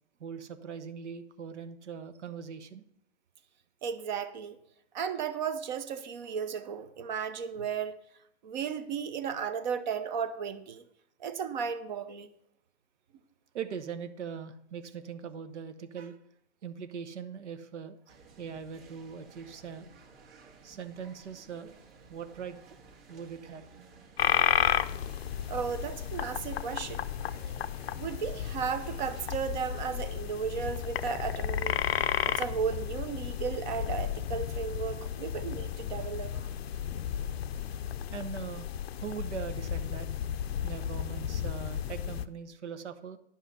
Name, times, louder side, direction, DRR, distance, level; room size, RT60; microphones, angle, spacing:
voice 1, 0.2-2.8 13.5-16.2 16.6-19.9 20.6-21.7 22.1-22.6 23.1-23.6 38.1-38.7 39.0-40.1 40.6-43.2, right 7 dB, 70° right, 1.0 m, -41 dB
voice 2, 3.8-4.6 4.9-8.0 8.4-10.8 11.2-12.3 25.5-27.0 27.9-31.8 32.2-36.5, right 7 dB, 40° right, 0.8 m, -34 dB
sound 1, 18.1-29.3, right 4 dB, 55° right, 1.9 m, -55 dB
sound 2, 24.2-42.3, left 10 dB, 60° left, 0.5 m, -33 dB
10.0 x 5.6 x 5.5 m
hypercardioid pair, 145°, 36 cm